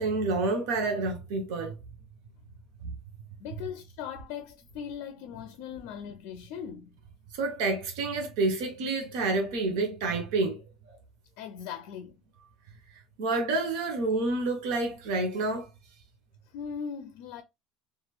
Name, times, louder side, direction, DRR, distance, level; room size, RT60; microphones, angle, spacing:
voice 1, 0.0-1.8 2.8-2.9 7.3-10.6 13.2-15.7, right 3 dB, 70° right, 0.8 m, -28 dB
voice 2, 3.4-6.9 11.4-12.2 16.5-17.4, left 7 dB, 65° left, 0.4 m, -39 dB
3.0 x 2.4 x 2.2 m
hypercardioid pair, 80°, 2 cm